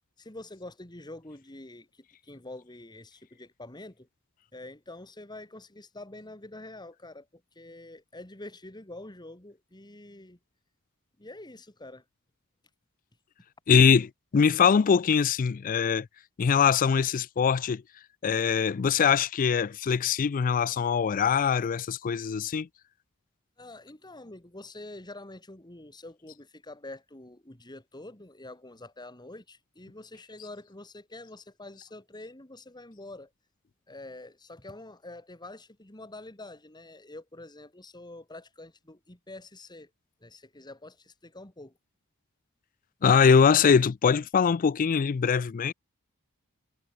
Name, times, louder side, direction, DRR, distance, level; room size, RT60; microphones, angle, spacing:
voice 1, 0.2-4.1 4.5-10.4 11.2-12.0 23.6-33.3 33.9-39.9 40.2-41.7, left 2 dB, 20° left, 2.2 m, -46 dB
voice 2, 13.7-16.1 16.4-17.8 18.2-22.7 43.0-45.7, left 6 dB, 40° left, 0.4 m, -22 dB
head